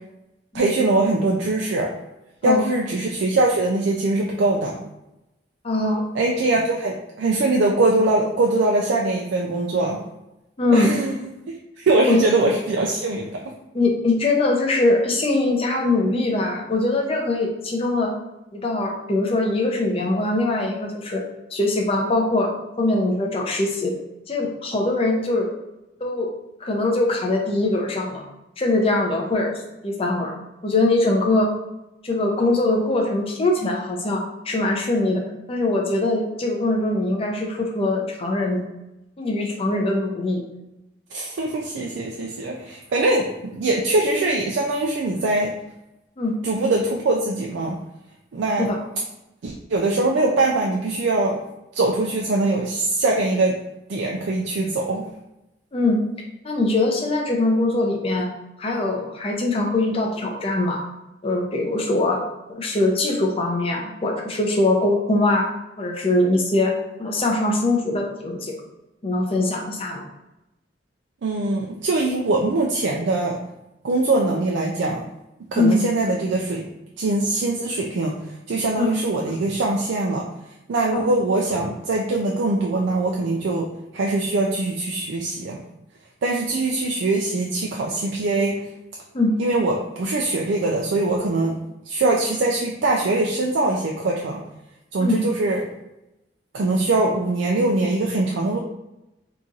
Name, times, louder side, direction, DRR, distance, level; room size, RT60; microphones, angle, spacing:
voice 1, 0.5-1.9 2.4-4.8 6.1-10.0 10.7-11.3 11.8-13.4 41.1-45.5 46.4-47.8 48.3-48.7 49.4-51.4 51.7-53.6 53.9-55.0 71.2-73.4 73.8-75.0 75.5-76.7 77.0-80.3 80.7-85.6 86.2-88.6 89.4-94.4 94.9-95.6 96.5-98.6, right 2 dB, 75° right, -1 dB, 0.4 m, -22 dB
voice 2, 5.6-6.0 10.6-10.9 12.1-12.3 13.7-18.1 18.5-21.2 21.5-22.5 22.8-23.9 24.3-25.5 26.0-26.3 26.6-28.2 28.6-29.5 29.8-30.3 30.6-31.5 32.0-35.2 35.5-38.6 39.2-40.4 46.2-46.4 48.6-48.8 55.7-56.0 56.4-58.3 58.6-60.8 61.2-62.2 62.5-65.5 65.8-68.5 69.0-70.1 75.6-75.8 78.8-78.9 89.1-89.3 95.0-95.2, left 2 dB, 30° left, 0 dB, 0.6 m, -22 dB
2.9 x 2.5 x 3.8 m, 0.93 s
head